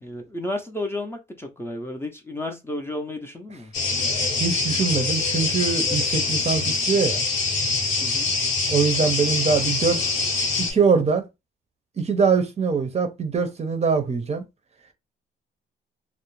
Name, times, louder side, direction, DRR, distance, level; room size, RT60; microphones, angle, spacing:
voice 1, 0.0-3.7 8.0-8.3, left 1 dB, 10° left, 0.5 m, -32 dB
sound 1, 3.7-10.7, left 3 dB, 85° left, 0.9 m, -24 dB
voice 2, 4.4-7.2 8.7-10.1 10.7-11.2 12.0-14.4, right 5 dB, 35° right, 0.6 m, -23 dB
2.4 x 2.0 x 3.0 m
cardioid pair, 90°, 20 cm